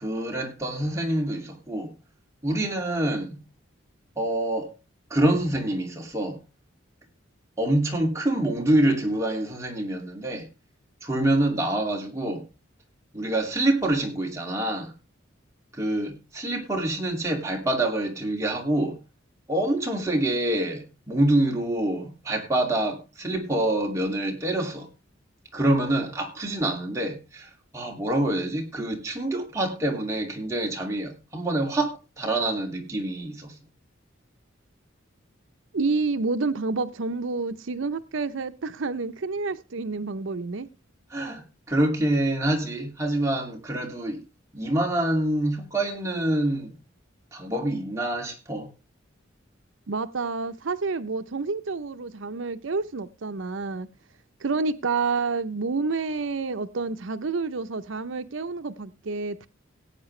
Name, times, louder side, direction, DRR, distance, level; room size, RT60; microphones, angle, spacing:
voice 1, 0.0-1.9 2.4-3.4 4.2-4.7 5.1-6.4 7.6-10.5 11.0-12.5 13.1-14.9 15.7-19.0 19.5-24.9 25.5-33.5 41.1-44.2 44.5-46.8 47.3-48.7, right 1 dB, 15° right, 2.4 m, -26 dB
voice 2, 35.7-40.7 49.9-53.9 54.4-59.5, right 4 dB, 75° right, 0.7 m, -29 dB
17.5 x 8.9 x 3.2 m
head